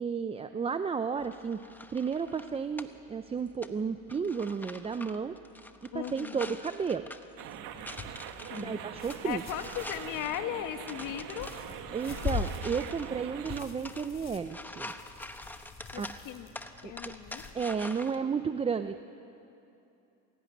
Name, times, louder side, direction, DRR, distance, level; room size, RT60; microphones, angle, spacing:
voice 1, 0.0-1.6 1.9-5.4 5.8-7.1 8.6-9.4 11.9-14.9 16.0-16.1 16.8-17.2 17.5-19.0, right 6 dB, 15° right, 9 dB, 0.5 m, -33 dB
sound 1, 1.2-18.2, left 1 dB, 5° left, 1.0 m, -47 dB
voice 2, 5.9-6.6 8.5-11.5 15.9-16.5 16.8-17.4, left 11 dB, 55° left, 7 dB, 1.8 m, -38 dB
sound 2, 7.4-13.6, right 10 dB, 60° right, 1.7 m, -43 dB
sound 3, 7.7-17.5, left 5 dB, 35° left, 3.7 m, -42 dB
26.5 x 17.5 x 9.3 m, 2.8 s
cardioid pair, 125°, 37 cm